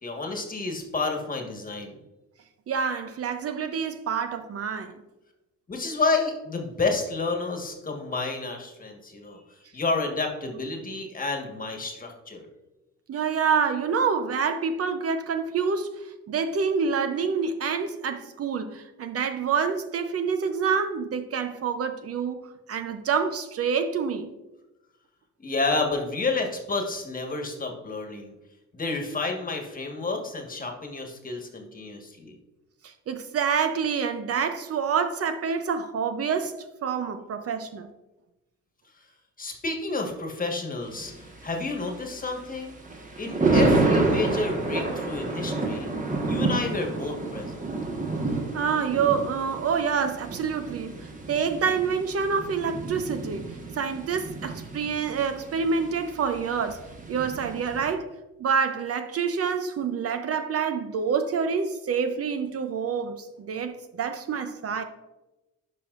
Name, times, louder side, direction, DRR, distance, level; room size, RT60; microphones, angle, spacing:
voice 1, 0.0-1.9 5.7-9.4 9.7-12.5 25.4-28.3 28.7-32.3 39.4-41.1 41.4-42.7 43.2-45.9 46.3-47.6, left 3 dB, 30° left, 3 dB, 1.4 m, -30 dB
voice 2, 2.7-4.9 13.1-15.9 16.3-22.4 22.7-24.3 32.8-36.6 36.8-37.9 48.5-50.9 51.3-53.4 53.8-56.8 57.1-58.1 58.4-64.8, right 6 dB, 50° right, 8 dB, 0.6 m, -27 dB
Thunder, 40.8-57.9, right 3 dB, 25° right, 1.3 m, -29 dB
10.5 x 5.1 x 2.4 m, 1.0 s
cardioid pair, 90°, 30 cm